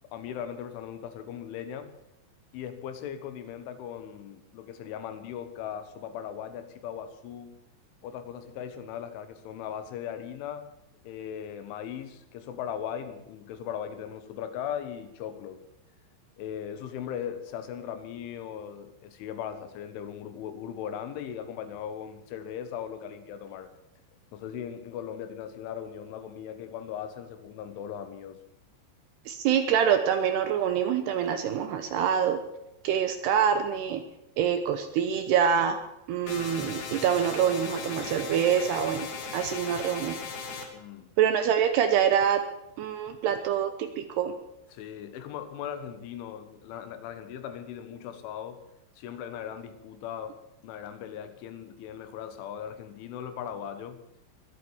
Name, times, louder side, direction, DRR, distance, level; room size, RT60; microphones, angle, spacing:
voice 1, 0.1-2.0 2.5-7.6 8.0-10.7 11.1-15.7 16.4-23.7 24.3-28.4 40.7-41.2 44.7-48.6 49.0-54.1, left 9 dB, 80° left, 9 dB, 3.7 m, -38 dB
voice 2, 29.3-32.4 32.8-34.0 34.4-35.8 36.1-39.1 39.3-40.2 41.2-42.4 42.8-44.3, right 8 dB, 75° right, 8 dB, 2.6 m, -25 dB
sound 1, 36.3-40.7, left 4 dB, 50° left, 2.9 m, -37 dB
23.0 x 8.5 x 7.2 m, 0.87 s
omnidirectional pair, 5.6 m